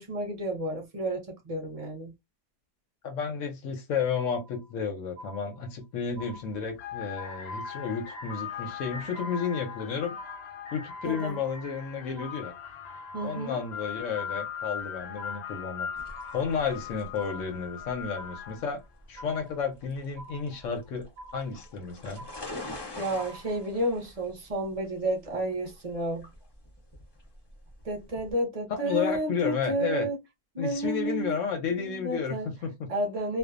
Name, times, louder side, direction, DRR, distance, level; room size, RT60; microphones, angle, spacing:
voice 1, 0.0-2.1 11.0-11.4 13.1-13.6 23.0-26.3 27.8-30.2 30.5-31.3 32.0-32.5 32.9-33.4, right 1 dB, 40° right, 0.5 m, -31 dB
voice 2, 3.0-10.1 10.7-12.5 13.2-15.9 16.3-18.8 19.1-21.1 21.3-22.3 28.7-30.1 30.6-32.9, left 6 dB, 65° left, 0.8 m, -32 dB
sound 1, 4.2-4.8 5.2-5.8 6.2-6.8 7.2-7.8 8.2-8.8 9.2-9.8 10.2-10.8 11.2-11.8 12.2-12.8 13.2-13.8 14.2-14.8 15.2-15.8 16.2-16.8 17.2-17.8 18.2-18.8 19.2-19.8 20.2-20.8 21.2-21.8 22.2-22.8 23.2-23.8, right 1 dB, 60° right, 0.9 m, -48 dB
sound 2, 6.1-6.3 6.7-18.8, left 7 dB, 90° left, 0.5 m, -39 dB
sound 3, 16.0-28.3, left 2 dB, 30° left, 0.5 m, -46 dB
2.6 x 2.2 x 2.4 m
omnidirectional pair, 1.7 m